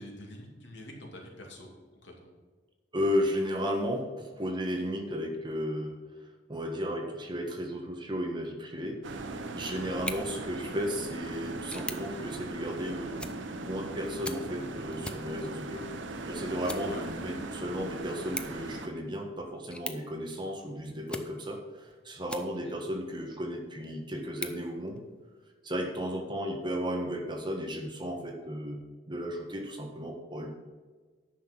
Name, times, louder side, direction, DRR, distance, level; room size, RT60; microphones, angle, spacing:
voice 1, 0.0-1.7 2.0-2.3 9.7-10.0 16.8-17.0 22.7-22.8, left 1 dB, 70° left, 0 dB, 2.5 m, -46 dB
voice 2, 2.9-6.0 6.5-9.0 9.5-13.2 13.6-15.8 16.3-25.0 25.6-28.8 29.1-30.6, equal, 25° right, 2 dB, 1.5 m, -34 dB
sound 1, 9.0-18.9, right 2 dB, 80° right, 0.9 m, -39 dB
sound 2, 9.9-22.9 23.4-25.5, left 2 dB, 5° left, 0.5 m, -45 dB
10.0 x 6.1 x 6.1 m, 1.4 s
head